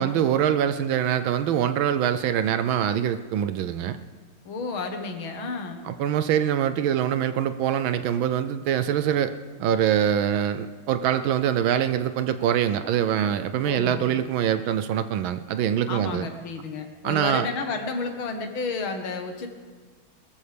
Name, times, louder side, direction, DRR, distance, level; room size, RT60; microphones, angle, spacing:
voice 1, 0.0-4.0 5.8-16.3 17.0-17.5, right 9 dB, 75° right, 11 dB, 1.3 m, -24 dB
voice 2, 4.5-5.8 13.6-14.1 15.9-19.5, left 4 dB, 70° left, 5 dB, 2.1 m, -31 dB
22.0 x 14.0 x 3.4 m, 1.5 s
omnidirectional pair, 2.4 m